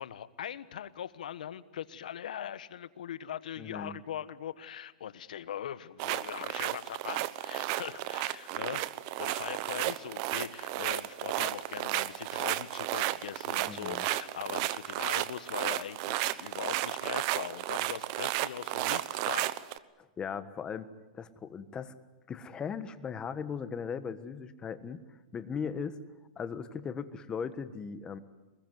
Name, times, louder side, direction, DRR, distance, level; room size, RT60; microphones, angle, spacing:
voice 1, 0.0-8.8 9.2-19.6, left 10 dB, 80° left, 15 dB, 1.3 m, -41 dB
voice 2, 3.6-4.0 13.7-14.1 20.0-20.9 21.1-21.9 22.3-25.0 25.3-26.0 26.4-28.2, left 6 dB, 20° left, 12 dB, 1.4 m, -38 dB
sound 1, 6.0-19.8, right 16 dB, 45° right, 1.0 m, -33 dB
23.5 x 21.0 x 9.5 m, 1.1 s
hypercardioid pair, 135°, 4 cm